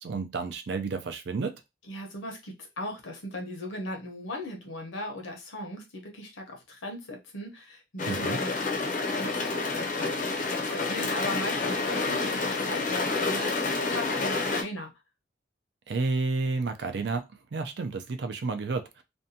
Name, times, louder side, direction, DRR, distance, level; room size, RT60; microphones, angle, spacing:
voice 1, 0.0-1.6 8.1-8.4 15.9-17.2 17.5-19.0, right 3 dB, 60° right, 7 dB, 0.4 m, -31 dB
voice 2, 1.9-14.9, left 1 dB, 90° left, 2 dB, 0.9 m, -38 dB
sound 1, 8.0-14.6, left 3 dB, 40° left, 0.5 m, -29 dB
2.6 x 2.2 x 2.7 m, 0.23 s
head